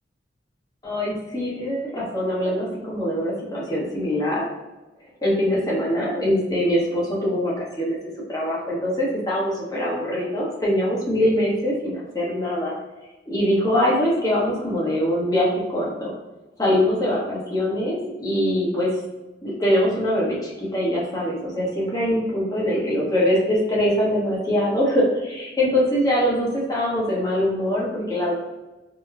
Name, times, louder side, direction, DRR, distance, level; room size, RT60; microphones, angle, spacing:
voice 1, 0.8-4.4 5.2-8.0 8.3-12.7 13.3-16.1 16.6-18.9 19.4-28.3, equal, 20° left, -6 dB, 0.9 m, -23 dB
4.8 x 2.1 x 2.4 m, 1.1 s
head